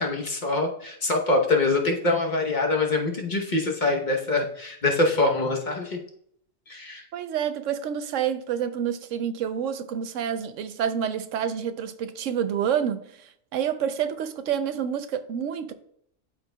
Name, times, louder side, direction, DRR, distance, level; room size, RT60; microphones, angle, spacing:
voice 1, 0.0-6.0 6.7-7.0, left 2 dB, 40° left, 1.0 m, -24 dB
voice 2, 7.1-15.7, right 8 dB, 80° right, 1.0 m, -28 dB
12.5 x 4.9 x 2.2 m
omnidirectional pair, 1.3 m